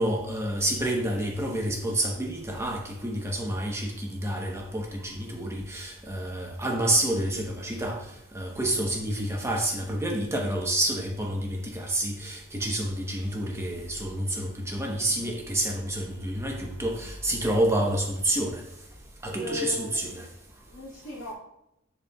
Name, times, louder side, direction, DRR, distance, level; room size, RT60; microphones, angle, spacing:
voice 1, 0.0-8.1 8.3-18.6 19.2-20.3, right 1 dB, 15° right, 0 dB, 0.9 m, -28 dB
voice 2, 19.3-20.0 20.6-21.3, left 3 dB, 80° left, -3 dB, 2.2 m, -37 dB
10.5 x 4.4 x 2.3 m, 0.82 s
head